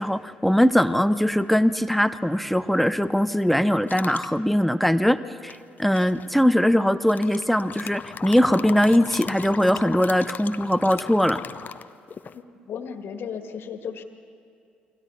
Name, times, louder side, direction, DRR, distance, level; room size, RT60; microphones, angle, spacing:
voice 1, 0.0-11.4, equal, ahead, 12 dB, 0.8 m, -21 dB
sound 1, 3.9-4.3 5.5-6.2 7.0-12.4, left 6 dB, 40° left, 0.8 m, -38 dB
voice 2, 12.3-14.0, left 7 dB, 55° left, 7 dB, 1.9 m, -35 dB
30.0 x 23.5 x 4.2 m, 2.6 s
hypercardioid pair, 50°, 5 cm